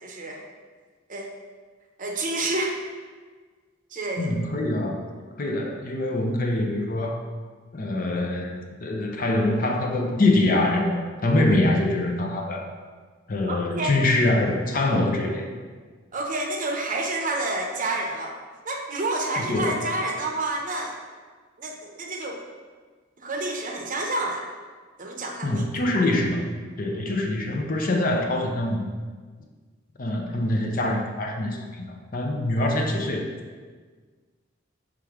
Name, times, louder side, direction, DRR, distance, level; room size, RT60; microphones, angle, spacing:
voice 1, 0.0-0.4 1.1-1.3 2.0-2.8 3.9-4.3 13.5-13.9 16.1-18.4 18.6-21.0 21.6-22.4 23.2-24.5 25.0-26.1, right 2 dB, 40° right, 2 dB, 0.7 m, -29 dB
voice 2, 4.2-5.1 5.4-7.2 7.7-12.7 13.3-15.4 19.5-19.8 25.4-26.5 26.8-28.9 30.0-33.2, left 1 dB, 45° left, 2 dB, 0.7 m, -24 dB
5.9 x 4.9 x 3.6 m, 1.5 s
head